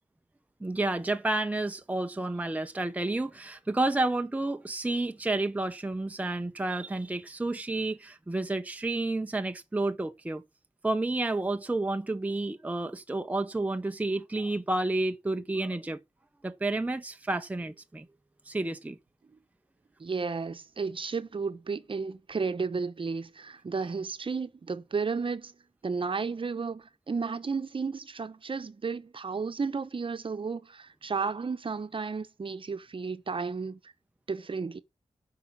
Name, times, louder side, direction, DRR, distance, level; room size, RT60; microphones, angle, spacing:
voice 1, 0.6-10.4 10.8-16.0 16.4-18.1 18.5-19.0, right 2 dB, 15° right, 0.7 m, -30 dB
voice 2, 20.0-25.5 25.8-33.8 34.3-34.8, right 5 dB, 50° right, 1.0 m, -33 dB
10.5 x 5.7 x 6.0 m
wide cardioid pair, 105°, 11 cm